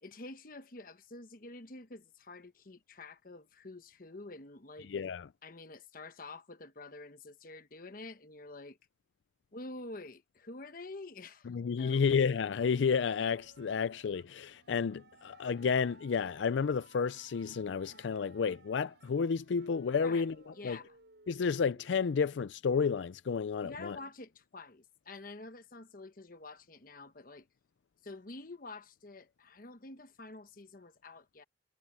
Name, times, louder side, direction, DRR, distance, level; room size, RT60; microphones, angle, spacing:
voice 1, 0.0-4.9 5.4-8.8 9.5-11.5 11.8-12.0 20.0-20.3 20.5-21.0 23.6-27.5 28.0-31.4, left 2 dB, 50° left, 1.1 m, -48 dB
voice 2, 4.9-5.3 11.5-20.3 20.6-20.8 21.3-24.0, left 6 dB, 85° left, 0.4 m, -31 dB
sound 1, 11.9-21.9, right 3 dB, 70° right, 5.5 m, -61 dB
head